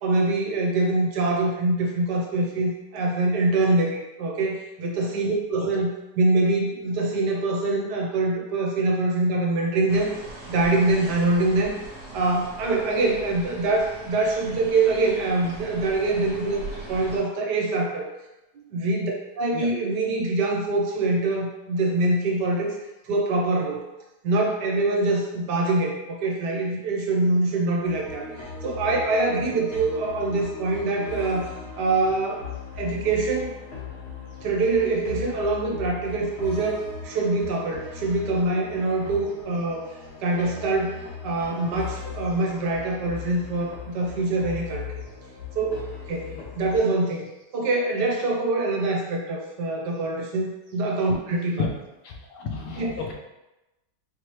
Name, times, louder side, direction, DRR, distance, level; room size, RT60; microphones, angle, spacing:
voice 1, 0.0-10.1 10.5-11.8 12.1-16.6 16.9-18.1 18.7-19.1 19.4-22.7 23.0-23.8 24.2-31.5 31.8-32.5 32.8-33.5 34.4-39.9 40.2-44.9 45.5-51.6 52.8-53.0, right 2 dB, 90° right, -1 dB, 1.4 m, -24 dB
sound 1, 9.9-17.2, right 1 dB, 60° right, 1.5 m, -40 dB
sound 2, 27.8-46.8, left 6 dB, 45° left, 1.1 m, -38 dB
voice 2, 52.0-53.1, left 5 dB, 85° left, 1 dB, 1.3 m, -31 dB
4.6 x 3.0 x 3.1 m, 0.99 s
omnidirectional pair, 1.8 m